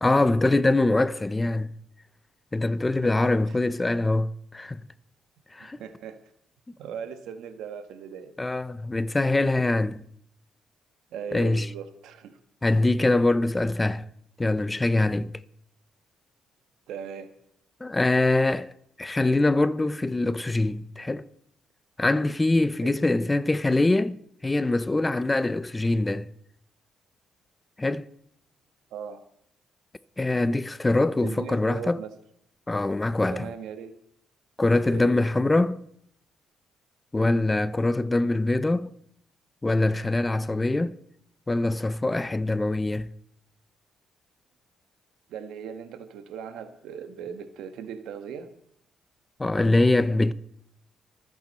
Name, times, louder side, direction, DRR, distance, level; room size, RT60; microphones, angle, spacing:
voice 1, 0.0-1.7 2.5-4.8 5.5-5.8 8.4-10.0 11.3-11.7 12.6-14.0 14.4-15.3 17.8-18.7 19.0-21.3 22.0-24.2 24.4-26.3 27.8-28.1 30.2-32.0 32.7-33.5 34.6-35.8 37.1-38.9 39.6-41.0 41.5-43.1 49.4-50.3, left 2 dB, 15° left, 0.6 m, -23 dB
voice 2, 3.0-3.6 5.6-6.2 6.8-8.3 11.1-12.4 16.9-17.3 22.8-23.0 28.9-29.2 31.2-32.1 33.3-33.9 34.8-35.2 45.3-48.5, right 7 dB, 85° right, 1.5 m, -39 dB
26.0 x 9.0 x 4.3 m
cardioid pair, 90°, 0 cm